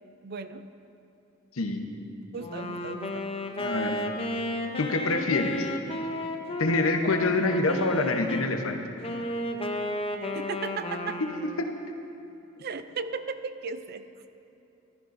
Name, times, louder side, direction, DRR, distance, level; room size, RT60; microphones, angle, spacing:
voice 1, 0.2-0.7 2.3-3.3 10.3-11.2 12.6-14.1, right 5 dB, 50° right, 11 dB, 0.4 m, -36 dB
Wind instrument woodwind instrument, 2.4-8.5 9.0-11.7, left 1 dB, 25° left, 0.6 m, -33 dB
voice 2, 3.6-4.0 4.8-5.7 6.6-8.8 11.6-11.7, left 2 dB, 80° left, 5 dB, 0.9 m, -26 dB
15.0 x 13.5 x 2.6 m, 2.9 s
head